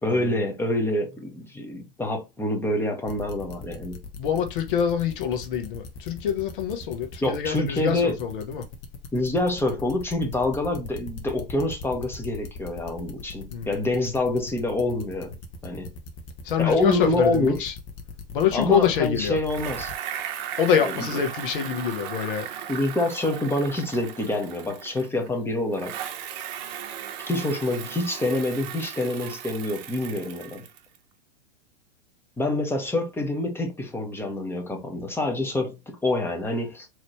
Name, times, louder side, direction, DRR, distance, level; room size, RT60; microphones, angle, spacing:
voice 1, 0.0-4.0 7.2-8.2 9.1-15.4 15.6-15.9 16.6-17.7 18.5-19.9 20.8-21.2 22.7-25.9 27.2-30.6 32.4-36.9, left 2 dB, 10° left, 1.1 m, -26 dB
sound 1, 3.1-19.9, left 3 dB, 40° left, 1.2 m, -40 dB
voice 2, 4.2-8.7 13.5-13.8 16.4-17.8 18.3-19.4 20.6-22.5, left 8 dB, 60° left, 1.2 m, -25 dB
Bicycle, 19.4-25.3 25.7-31.0, right 9 dB, 45° right, 0.8 m, -37 dB
4.1 x 3.2 x 3.2 m
hypercardioid pair, 105°, 30 cm